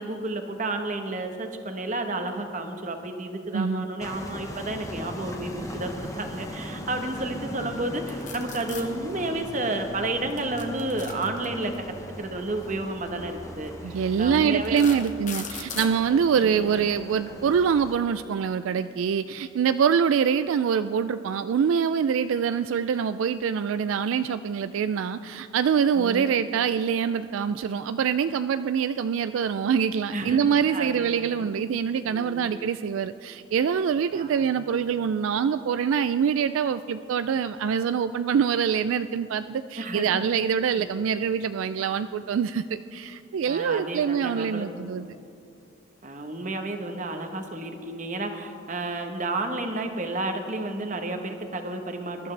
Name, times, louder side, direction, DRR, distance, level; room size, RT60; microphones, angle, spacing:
voice 1, 0.0-15.0 16.4-16.9 25.9-26.2 30.1-31.5 32.0-32.5 34.1-34.6 39.8-40.2 40.8-41.0 43.5-45.1 46.0-52.3, right 2 dB, 40° right, 5 dB, 1.0 m, -32 dB
voice 2, 3.5-3.9 13.8-45.1, right 7 dB, 80° right, 12 dB, 0.3 m, -25 dB
sound 1, 4.0-18.0, equal, 15° left, 1.0 m, -39 dB
sound 2, 8.1-8.8 10.3-11.8 12.9-13.1 13.7-13.8 14.4-15.9, left 7 dB, 40° left, 1.1 m, -38 dB
21.5 x 12.0 x 3.3 m, 2.5 s
head